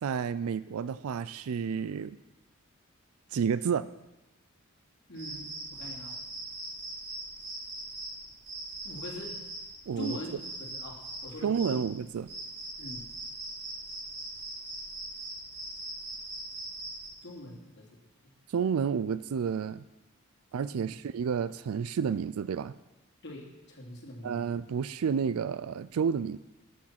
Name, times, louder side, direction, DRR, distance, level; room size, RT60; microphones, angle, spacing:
voice 1, 0.0-2.2 3.3-3.9 9.9-10.2 11.4-12.3 18.5-19.8 20.5-22.7 24.2-26.4, right 6 dB, 80° right, 16 dB, 0.4 m, -30 dB
voice 2, 5.1-6.2 8.8-9.4 10.0-10.3 10.6-11.8 12.8-13.1 17.2-17.9 18.2-18.3 20.7-20.9 23.2-24.5, left 1 dB, 55° left, -3 dB, 2.9 m, -42 dB
sound 1, 5.1-17.1, right 2 dB, 50° right, 5.5 m, -41 dB
13.5 x 8.3 x 5.9 m, 1.0 s
head